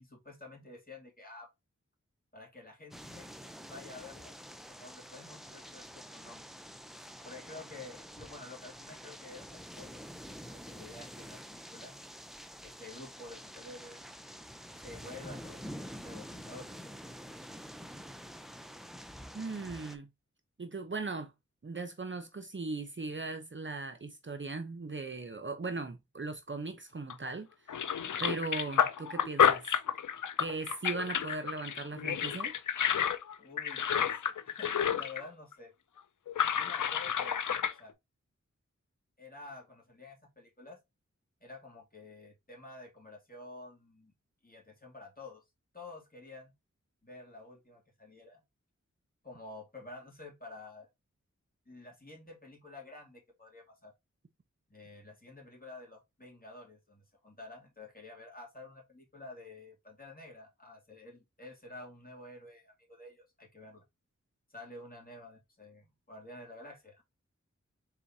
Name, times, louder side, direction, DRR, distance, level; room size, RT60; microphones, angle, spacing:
voice 1, 0.0-1.5 2.3-4.3 4.7-6.5 7.2-11.9 12.6-14.0 14.7-15.7 15.9-16.7 33.4-34.2 34.4-35.7 36.5-37.5 37.8-37.9 39.2-40.8 41.4-44.1 44.4-45.4 45.7-46.5 47.0-48.4 49.2-50.9 51.7-53.9 54.7-63.8 64.5-67.0, left 2 dB, 30° left, 2.5 m, -50 dB
sound 1, 2.9-20.0, equal, ahead, 0.6 m, -47 dB
voice 2, 19.3-20.1 20.6-21.3 21.6-27.5 28.2-29.7 30.4-32.5, right 3 dB, 40° right, 0.7 m, -38 dB
sound 2, 27.1-27.3 27.7-35.3 35.5-35.6 36.3-37.7, left 8 dB, 85° left, 0.5 m, -30 dB
4.0 x 4.0 x 2.7 m
cardioid pair, 45°, 30 cm